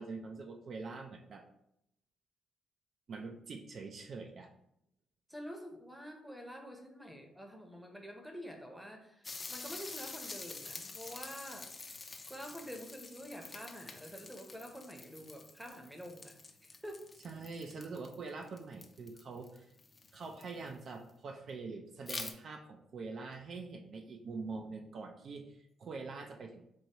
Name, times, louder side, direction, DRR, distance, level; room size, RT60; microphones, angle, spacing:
voice 1, 0.0-1.4 3.1-4.5 17.2-19.7 20.1-26.7, right 4 dB, 55° right, 4 dB, 0.4 m, -44 dB
voice 2, 5.3-11.7 12.3-16.4 16.6-17.1, equal, 5° right, 3 dB, 0.7 m, -47 dB
sound 1, 9.2-20.7 22.1-22.3, left 3 dB, 30° left, 0.5 m, -47 dB
4.5 x 2.6 x 2.9 m, 0.77 s
cardioid pair, 90°, 0 cm